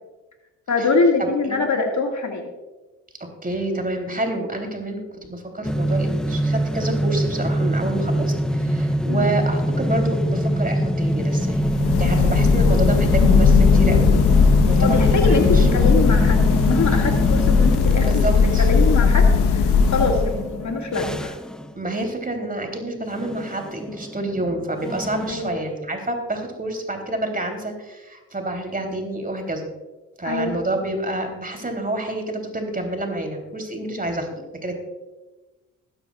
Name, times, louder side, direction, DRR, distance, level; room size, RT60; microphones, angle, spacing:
voice 1, 0.7-2.5 9.1-9.3 14.8-21.4 25.3-25.6 30.2-30.6, left 3 dB, 45° left, 2 dB, 2.2 m, -23 dB
voice 2, 1.2-1.6 3.4-14.1 14.4-15.7 18.0-18.7 21.7-29.7 30.2-34.7, right 1 dB, 20° right, 4 dB, 3.4 m, -28 dB
sound 1, 5.6-21.7 23.1-25.5, equal, ahead, 0.8 m, -24 dB
sound 2, 11.5-20.6, left 5 dB, 70° left, 1.2 m, -17 dB
21.0 x 10.5 x 2.5 m, 1.2 s
hypercardioid pair, 40°, 41 cm